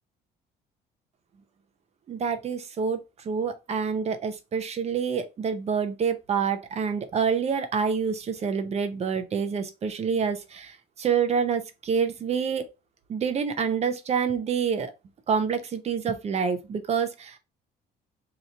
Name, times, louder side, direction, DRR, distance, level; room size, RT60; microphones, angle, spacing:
voice 1, 2.1-3.0 3.2-12.7 13.1-14.9 15.3-17.4, right 6 dB, 40° right, 0.6 m, -27 dB
2.9 x 2.6 x 4.3 m
cardioid pair, 110°, 17 cm